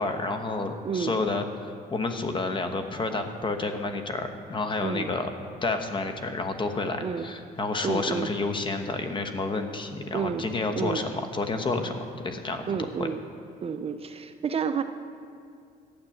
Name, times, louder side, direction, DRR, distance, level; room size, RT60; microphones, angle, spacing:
voice 1, 0.0-5.3 5.6-12.6 13.0-13.1, left 3 dB, 30° left, 6 dB, 1.2 m, -30 dB
voice 2, 0.8-1.2 4.8-5.1 7.0-7.3 7.8-8.3 10.1-11.0 12.7-13.2 13.6-14.8, right 6 dB, 35° right, 9 dB, 0.6 m, -30 dB
12.0 x 8.7 x 7.2 m, 2.4 s
cardioid pair, 110°, 17 cm